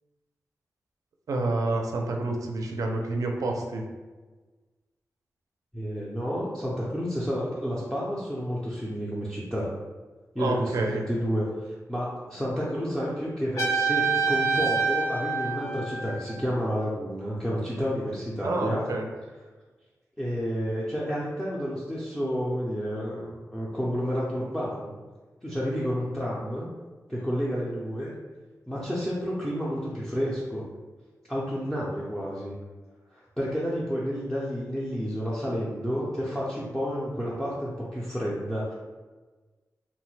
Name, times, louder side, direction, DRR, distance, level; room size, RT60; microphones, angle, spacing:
voice 1, 1.3-3.9 10.4-11.0 18.4-19.1, right 2 dB, 75° right, 2 dB, 0.4 m, -28 dB
voice 2, 5.7-9.7 10.3-18.8 20.2-25.0 25.4-26.7 27.1-28.1 28.7-30.6 31.3-32.5 33.1-38.7, equal, 5° left, -7 dB, 0.4 m, -30 dB
Trumpet, 13.6-16.4, right 5 dB, 70° left, 0.5 m, -26 dB
3.0 x 2.1 x 3.1 m, 1.3 s
wide cardioid pair, 165°, 6 cm